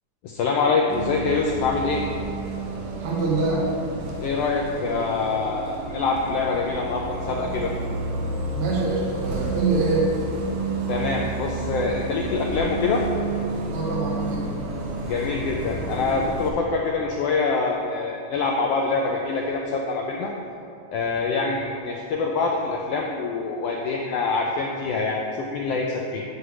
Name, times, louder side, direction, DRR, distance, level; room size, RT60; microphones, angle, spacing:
voice 1, 0.2-2.0 4.2-7.7 10.9-13.0 15.0-20.3 20.9-26.2, left 4 dB, 85° left, 0 dB, 1.4 m, -25 dB
Bus, 0.9-16.5, right 2 dB, 75° right, 2.0 m, -30 dB
voice 2, 3.0-3.7 8.6-10.1 13.7-14.5, right 3 dB, 55° right, -4 dB, 1.8 m, -24 dB
9.2 x 3.3 x 6.7 m, 2.7 s
omnidirectional pair, 3.3 m